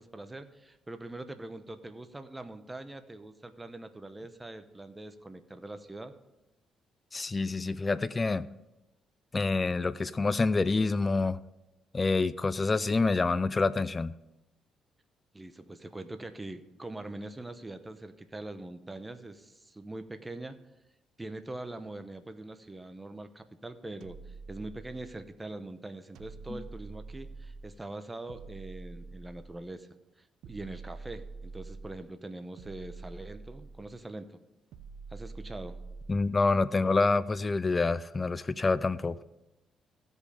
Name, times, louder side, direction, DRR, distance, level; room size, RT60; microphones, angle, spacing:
voice 1, 0.0-6.1 15.3-20.6 21.2-29.9 30.2-34.4 35.1-35.8, right 2 dB, 15° right, 9 dB, 0.8 m, -43 dB
voice 2, 7.1-8.5 9.3-11.4 11.9-14.1 26.5-26.6 36.1-39.2, left 3 dB, 25° left, 15 dB, 0.4 m, -27 dB
sound 1, 24.0-25.3 26.2-27.8 28.3-29.7 30.4-32.0 32.6-34.0 34.7-36.3, right 4 dB, 80° right, 0.7 m, -46 dB
15.5 x 5.4 x 5.0 m, 0.96 s
cardioid pair, 90°, 0 cm